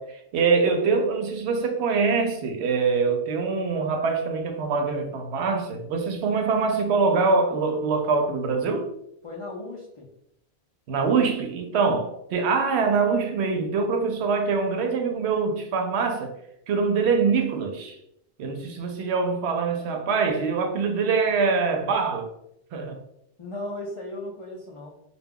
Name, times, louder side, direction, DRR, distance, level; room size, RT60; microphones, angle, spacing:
voice 1, 0.0-8.9 10.9-16.3 16.7-18.0 18.4-22.3 22.7-23.0, right 4 dB, 85° right, 0.8 m, -24 dB
voice 2, 9.2-10.1 23.4-24.9, left 1 dB, 60° left, 0.3 m, -36 dB
2.2 x 2.1 x 3.5 m
omnidirectional pair, 1.1 m